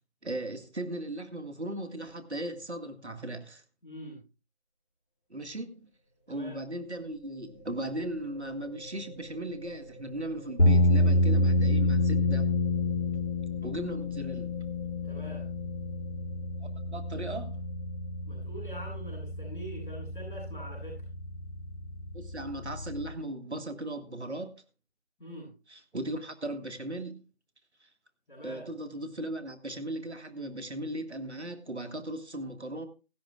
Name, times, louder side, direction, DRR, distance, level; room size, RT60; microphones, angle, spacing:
voice 1, 0.2-3.6 5.3-5.9 6.3-12.5 13.6-14.6 16.6-17.6 22.1-24.6 25.7-27.2 27.8-27.9 28.4-32.9, right 1 dB, 85° right, 1.7 m, -37 dB
voice 2, 3.8-4.2 6.3-6.6 15.0-15.5 18.2-21.0 25.2-25.5 28.3-28.7, equal, ahead, 6.7 m, -44 dB
sound 1, 6.2-18.4, equal, 40° left, 3.8 m, -49 dB
sound 2, 10.6-23.1, left 1 dB, 80° left, 2.9 m, -28 dB
16.5 x 14.0 x 2.4 m
figure-of-eight pair, 175°, 33 cm